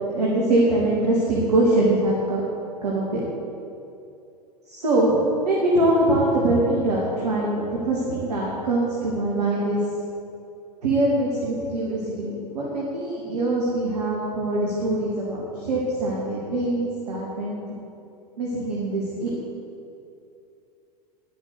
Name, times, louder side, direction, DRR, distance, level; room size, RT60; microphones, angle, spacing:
voice 1, 0.1-2.5 2.8-3.0 4.7-5.1 5.4-9.8 10.8-17.6 18.4-19.3, right 1 dB, 75° right, -4 dB, 2.9 m, -23 dB
11.5 x 10.5 x 8.1 m, 2.7 s
figure-of-eight pair, 95°, 21 cm